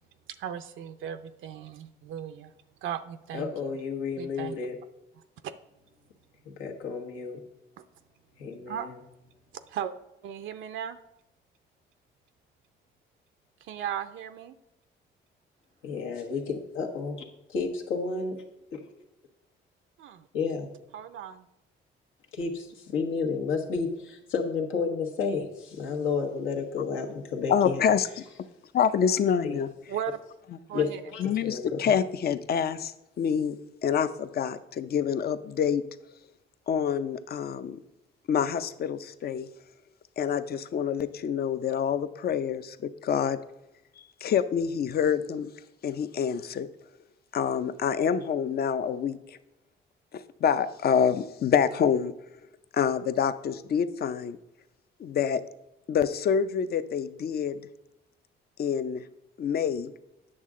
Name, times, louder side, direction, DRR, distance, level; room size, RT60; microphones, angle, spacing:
voice 1, 0.4-2.5 2.8-3.7 4.2-4.6 5.1-5.5 8.7-8.9 9.5-9.9 10.2-11.0 13.6-14.6 20.0-20.3 20.9-21.5 29.9-30.2 30.7-31.0, right 9 dB, 75° right, 10 dB, 0.5 m, -37 dB
voice 2, 3.3-4.7 6.4-7.4 8.4-8.9 15.8-17.2 17.5-18.4 20.3-20.7 22.3-27.8 29.4-29.6 30.7-30.9 31.1-32.0, left 5 dB, 85° left, 1 dB, 1.3 m, -31 dB
voice 3, 27.5-28.1 28.7-29.7 31.2-33.6 33.8-35.8 36.7-37.8 38.3-39.5 40.2-43.4 44.2-45.5 45.8-46.7 47.3-49.4 50.1-52.1 52.7-54.4 55.0-55.4 55.9-57.6 58.6-59.0 59.4-59.9, left 7 dB, 50° left, 12 dB, 0.5 m, -27 dB
8.7 x 6.5 x 3.7 m, 0.90 s
cardioid pair, 90°, 20 cm